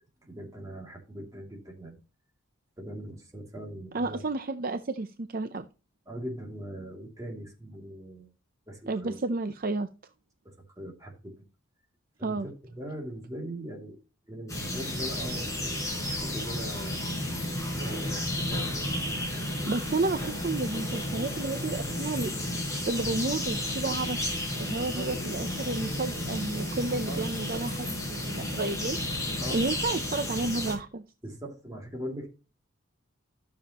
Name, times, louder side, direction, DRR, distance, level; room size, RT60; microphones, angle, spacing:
voice 1, 0.3-2.0 2.8-4.2 6.1-8.3 8.7-9.2 10.4-11.3 12.2-14.0 14.3-15.8 16.1-17.0 17.7-19.5 24.9-25.1 27.1-27.3 27.7-27.8 29.4-29.6 31.2-32.3, right 1 dB, 15° right, 0 dB, 2.7 m, -41 dB
voice 2, 3.9-5.6 8.9-9.9 12.2-12.5 19.6-22.3 22.9-29.0 29.5-31.0, right 3 dB, 45° right, 9 dB, 0.5 m, -31 dB
sound 1, 14.5-30.7, left 1 dB, 15° left, 4.7 m, -32 dB
12.5 x 7.1 x 3.0 m, 0.32 s
head